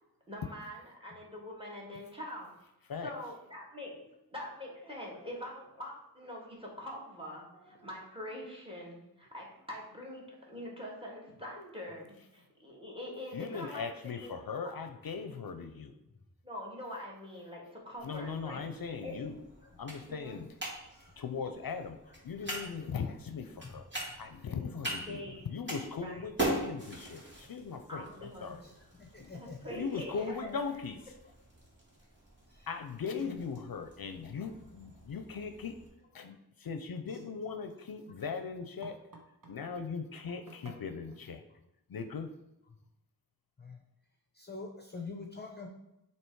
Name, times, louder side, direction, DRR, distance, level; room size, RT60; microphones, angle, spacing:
voice 1, 0.3-2.5 3.0-14.3 16.4-18.6 19.0-19.1 20.1-20.4 25.1-25.5 25.9-26.2 27.9-28.5 29.3-30.5, left 1 dB, 15° right, -2 dB, 1.9 m, -44 dB
voice 2, 13.3-15.9 18.0-19.4 19.8-20.5 21.2-22.0 22.2-23.8 24.2-25.2 25.5-28.6 29.2-29.3 29.7-31.1 32.7-35.7 36.1-39.0 39.5-41.4 41.9-42.3, left 5 dB, 65° left, 8 dB, 0.5 m, -39 dB
sound 1, 18.0-35.9, right 2 dB, 30° right, 2.1 m, -43 dB
voice 3, 20.9-21.2 22.4-22.6 23.6-23.7 24.1-24.2 28.6-29.7 32.5-32.7 33.1-33.3 43.6-43.8 44.3-45.7, left 4 dB, 25° left, 2 dB, 0.7 m, -46 dB
sound 2, 32.8-32.9 33.2-33.5 35.9-36.3 36.9-39.6 40.1-41.2, right 3 dB, 60° right, 1.3 m, -54 dB
7.6 x 2.9 x 4.6 m, 0.88 s
wide cardioid pair, 70°, 38 cm